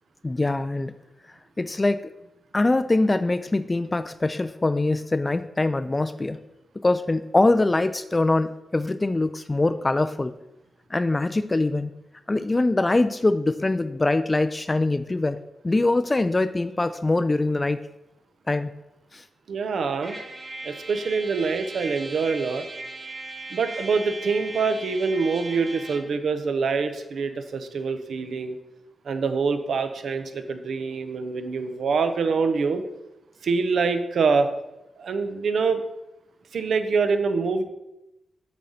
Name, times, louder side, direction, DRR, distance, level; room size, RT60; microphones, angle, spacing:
voice 1, 0.2-0.9 1.6-2.1 2.5-6.4 6.8-10.4 10.9-11.9 12.3-15.4 15.6-17.8 18.5-18.7 19.1-19.2, left 2 dB, 25° left, 10 dB, 0.4 m, -23 dB
voice 2, 19.5-20.2 20.6-22.7 23.5-28.6 29.0-32.8 33.4-34.5 35.0-35.8 36.5-37.6, right 4 dB, 75° right, 8 dB, 0.8 m, -25 dB
Trumpet, 20.0-26.1, right 2 dB, 45° right, 2.8 m, -38 dB
8.5 x 4.1 x 6.5 m, 0.91 s
cardioid pair, 65°, 0 cm